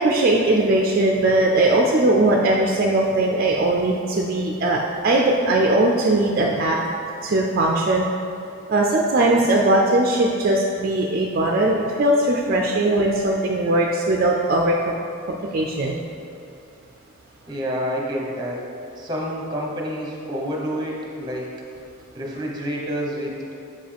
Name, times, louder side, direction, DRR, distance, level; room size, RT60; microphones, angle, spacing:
voice 1, 0.0-6.8 7.2-8.1 8.7-14.9 15.3-16.0, right 2 dB, 40° right, -1 dB, 0.4 m, -19 dB
voice 2, 17.5-18.6 19.0-21.5 22.1-23.5, equal, 20° right, -2 dB, 0.9 m, -28 dB
7.7 x 5.1 x 3.4 m, 2.7 s
head